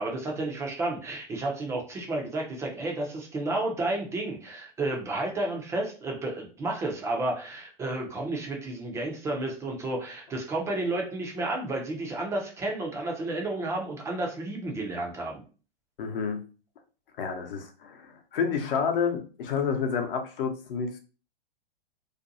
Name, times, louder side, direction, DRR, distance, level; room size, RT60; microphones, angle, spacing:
voice 1, 0.0-15.4, right 2 dB, 10° right, 0 dB, 0.4 m, -31 dB
voice 2, 16.0-16.4 17.2-21.0, left 6 dB, 65° left, 4 dB, 0.7 m, -29 dB
2.5 x 2.2 x 2.6 m, 0.36 s
hypercardioid pair, 120°, 30 cm